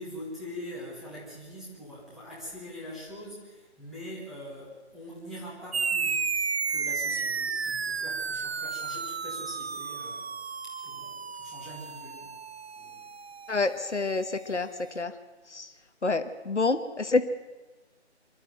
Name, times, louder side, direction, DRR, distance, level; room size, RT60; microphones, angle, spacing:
voice 1, 0.0-10.2 10.6-12.3 12.8-13.0, left 1 dB, ahead, -7 dB, 1.3 m, -43 dB
sound 1, 5.7-14.6, right 5 dB, 60° right, 0.6 m, -33 dB
voice 2, 13.5-15.1 15.5-15.7 16.0-17.2, left 3 dB, 80° left, 9 dB, 1.4 m, -28 dB
24.5 x 12.0 x 9.1 m, 1.2 s
figure-of-eight pair, 155°, 35 cm